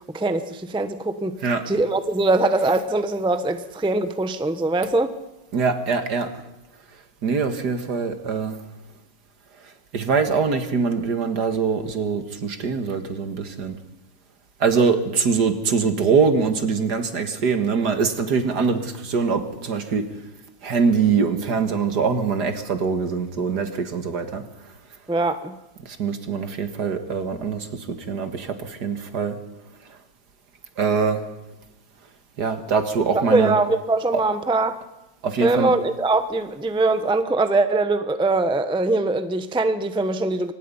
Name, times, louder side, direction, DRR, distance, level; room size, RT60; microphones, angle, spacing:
voice 1, 0.1-1.4 1.7-5.1 25.1-25.5 33.1-34.8 35.4-40.5, right 2 dB, 5° right, 10 dB, 0.8 m, -22 dB
voice 2, 5.5-6.4 7.2-8.6 9.9-13.8 14.6-20.1 20.6-24.5 25.8-29.4 30.8-31.2 32.4-33.6 34.1-34.2 35.2-35.7, right 5 dB, 65° right, 8 dB, 2.2 m, -23 dB
24.5 x 19.0 x 5.5 m, 0.95 s
omnidirectional pair, 1.9 m